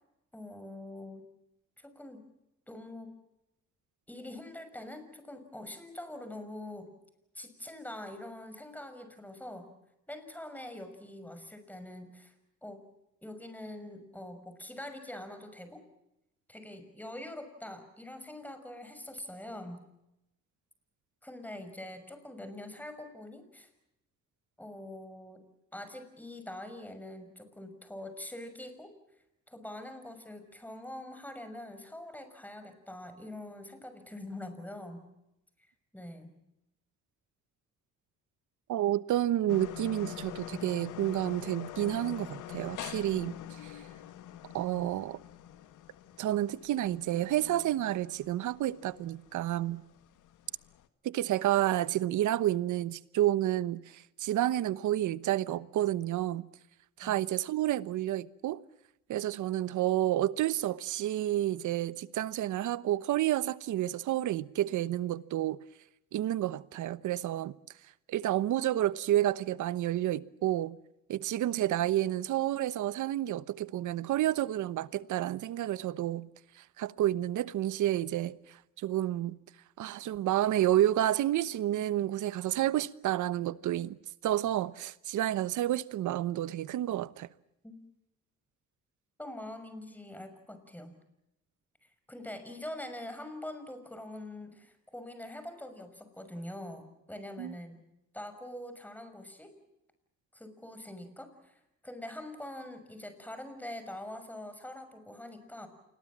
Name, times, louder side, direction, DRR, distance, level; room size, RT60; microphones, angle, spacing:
voice 1, 0.3-1.3 1.8-2.3 2.7-3.1 4.1-6.9 7.3-9.7 10.1-12.3 12.6-12.8 13.2-15.8 16.5-19.9 21.2-23.7 24.6-25.4 25.7-28.9 29.5-35.1 35.9-36.3 57.0-57.2 87.6-87.8 89.2-90.9 91.8-97.8 98.1-99.6 100.3-105.7, left 1 dB, 5° left, 6.0 m, -44 dB
voice 2, 38.7-43.4 43.6-43.8 44.5-45.2 46.2-49.8 51.0-56.5 57.0-58.6 59.1-65.6 66.1-67.5 68.1-70.8 71.1-76.3 76.6-79.4 79.8-84.0 84.2-87.3 97.4-97.6, right 13 dB, 80° right, 1.1 m, -30 dB
sound 1, 39.5-50.9, left 12 dB, 85° left, 1.7 m, -45 dB
28.0 x 21.5 x 7.4 m
cardioid pair, 90°, 30 cm